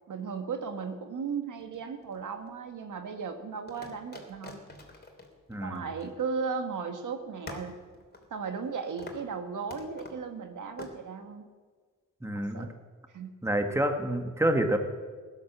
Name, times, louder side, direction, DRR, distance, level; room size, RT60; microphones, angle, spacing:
voice 1, 0.1-4.6 5.6-7.8 8.3-11.5 12.3-12.7 13.1-13.3, right 5 dB, 70° right, 6 dB, 1.7 m, -36 dB
sound 1, 1.6-2.5 3.7-6.6 6.9-7.0 7.5-8.7 9.0-9.3 9.7-10.2 10.8-11.0, left 2 dB, 30° left, 3.2 m, -46 dB
voice 2, 5.5-5.8 12.2-12.7 13.4-14.8, right 1 dB, 10° right, 5 dB, 2.0 m, -28 dB
16.0 x 11.5 x 7.3 m, 1.5 s
cardioid pair, 65°, 32 cm